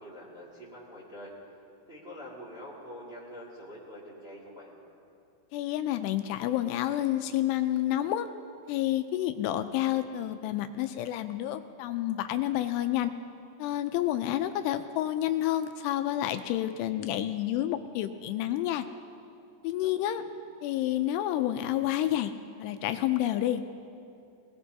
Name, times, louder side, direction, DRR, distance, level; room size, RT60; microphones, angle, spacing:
voice 1, 0.0-1.3 1.9-4.7 19.8-20.2, equal, 25° right, -4 dB, 1.3 m, -45 dB
voice 2, 5.5-8.3 8.7-13.1 13.6-18.8 19.6-20.2 20.6-22.3 22.6-23.6, left 13 dB, 85° left, 9 dB, 2.6 m, -29 dB
22.5 x 19.0 x 2.7 m, 2.6 s
omnidirectional pair, 5.0 m